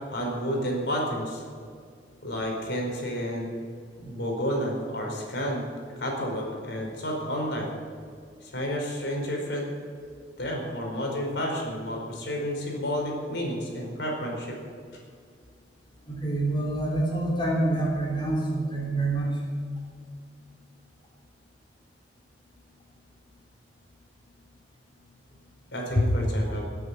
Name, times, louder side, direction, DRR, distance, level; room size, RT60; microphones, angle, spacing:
voice 1, 0.1-1.4 2.2-3.7 4.0-5.6 6.0-7.7 8.4-9.7 10.4-14.6 25.7-26.7, equal, 75° left, 0 dB, 4.8 m, -30 dB
voice 2, 16.1-19.4, right 2 dB, 30° left, -4 dB, 3.5 m, -27 dB
19.0 x 9.1 x 8.4 m, 2.1 s
head